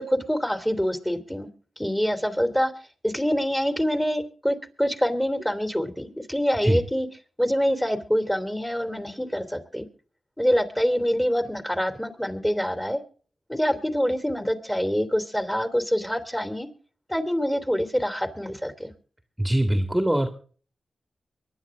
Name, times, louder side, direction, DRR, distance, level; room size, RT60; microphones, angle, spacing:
voice 1, 0.0-1.5 1.8-2.7 3.0-7.1 7.4-9.9 10.4-13.0 13.5-16.7 17.1-18.9, equal, 10° left, 9 dB, 2.9 m, -25 dB
voice 2, 19.4-20.3, right 1 dB, 10° right, 7 dB, 2.1 m, -22 dB
23.5 x 10.5 x 3.6 m, 0.41 s
cardioid pair, 55°, 0 cm